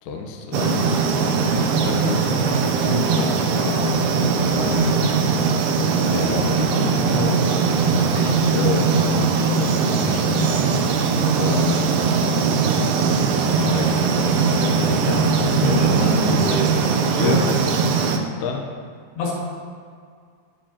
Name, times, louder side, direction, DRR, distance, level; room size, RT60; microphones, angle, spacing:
voice 1, 0.0-5.5 6.0-7.4 8.1-10.6 10.9-11.0 11.4-12.1 13.6-15.8 17.1-17.4 18.4-18.6, left 5 dB, 70° left, 1 dB, 2.1 m, -29 dB
sound 1, 0.5-18.2, right 5 dB, 75° right, 2.2 m, -20 dB
voice 2, 15.6-16.8 17.2-17.4 19.2-19.3, left 1 dB, 85° left, -5 dB, 4.2 m, -24 dB
19.5 x 6.9 x 2.9 m, 2.1 s
omnidirectional pair, 4.6 m